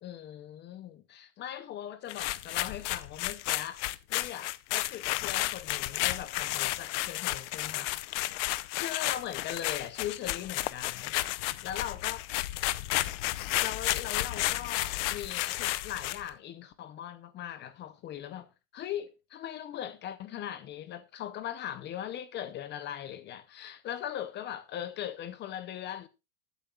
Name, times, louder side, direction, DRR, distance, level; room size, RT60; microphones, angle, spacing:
voice 1, 0.0-8.2 8.7-11.2 11.6-12.2 13.6-26.1, left 11 dB, 25° left, 0.7 m, -40 dB
sound 1, 2.1-16.3, left 18 dB, 65° left, 0.7 m, -32 dB
20.0 x 9.2 x 2.4 m
supercardioid pair, 150°, 39 cm